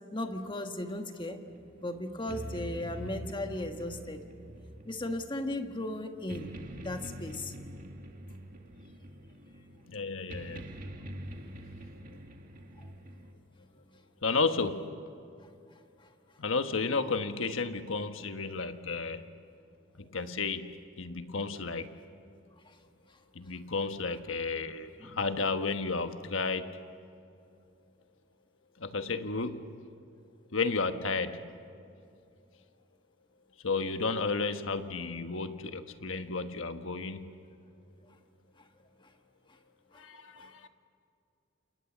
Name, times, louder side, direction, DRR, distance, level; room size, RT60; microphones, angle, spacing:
voice 1, 0.1-1.4 1.8-4.2 4.8-6.5 6.8-7.5 25.0-25.2 39.9-40.0 40.4-40.5, left 1 dB, 25° left, 5 dB, 1.5 m, -36 dB
sound 1, 1.5-13.3, equal, 45° right, 2.1 m, -45 dB
voice 2, 9.9-10.7 14.2-14.9 16.4-19.3 19.9-21.9 23.3-26.7 28.8-29.7 30.5-31.5 33.6-37.3 40.0-40.7, left 4 dB, 80° left, 8 dB, 1.3 m, -32 dB
28.5 x 28.0 x 7.3 m, 2.5 s
head